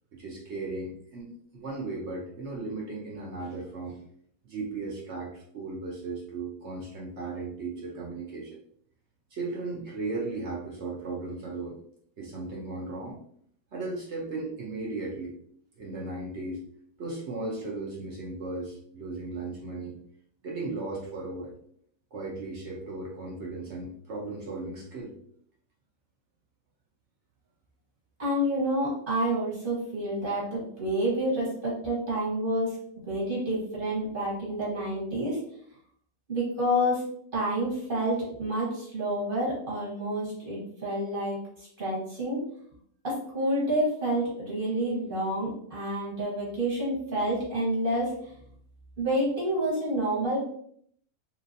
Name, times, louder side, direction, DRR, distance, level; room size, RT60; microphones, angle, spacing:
voice 1, 0.1-4.0 4.4-8.6 9.3-11.8 12.2-13.2 13.7-15.3 15.8-16.6 17.0-20.0 20.4-21.6 22.1-25.1, right 3 dB, 65° right, -3 dB, 0.7 m, -36 dB
voice 2, 28.2-32.8 33.1-35.4 36.3-37.0 37.3-42.4 43.0-48.1 49.0-50.4, right 1 dB, 35° right, -6 dB, 1.3 m, -28 dB
2.9 x 2.9 x 2.6 m, 0.64 s
omnidirectional pair, 1.8 m